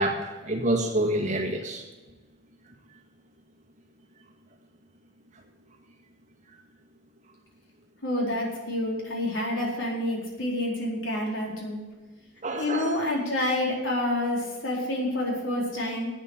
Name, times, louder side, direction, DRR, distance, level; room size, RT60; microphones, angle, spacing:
voice 1, 0.0-1.8 12.4-12.9, right 1 dB, 40° right, 0 dB, 1.7 m, -27 dB
voice 2, 8.0-11.8 12.5-16.1, left 1 dB, 85° left, -2 dB, 4.2 m, -28 dB
12.0 x 8.7 x 6.6 m, 1.2 s
head